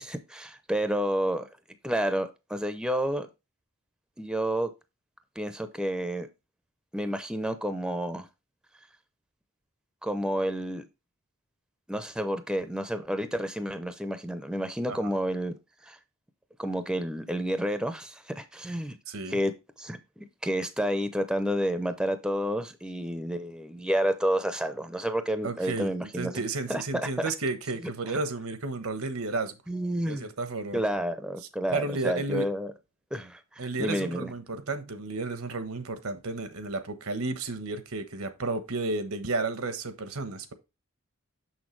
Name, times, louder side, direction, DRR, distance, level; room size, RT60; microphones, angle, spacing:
voice 1, 0.0-1.5 1.8-3.3 4.2-4.7 5.4-6.3 6.9-8.3 10.0-10.9 11.9-15.5 15.8-16.0 16.6-19.0 19.3-19.5 19.8-26.4 26.7-27.2 29.7-30.3 30.7-32.7 33.1-34.3, equal, 5° right, 0.7 m, -30 dB
voice 2, 19.1-19.4 25.4-29.6 30.1-30.8 31.7-32.5 33.6-40.5, right 3 dB, 75° right, 1.2 m, -32 dB
6.7 x 6.3 x 3.2 m
head